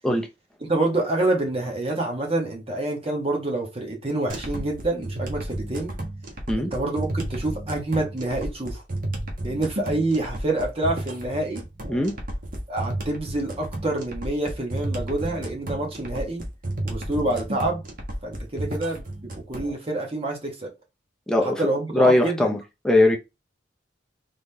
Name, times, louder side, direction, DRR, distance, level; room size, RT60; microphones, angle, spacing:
voice 1, 0.6-5.9 6.6-8.8 9.4-11.6 12.7-16.4 16.8-17.8 18.2-20.7 21.4-22.6, right 2 dB, 30° right, 1.6 m, -27 dB
sound 1, 4.3-19.7, right 1 dB, 45° right, 1.4 m, -32 dB
voice 2, 21.3-21.6 21.9-22.6 22.8-23.2, left 1 dB, 5° left, 0.7 m, -20 dB
3.9 x 3.7 x 3.5 m
head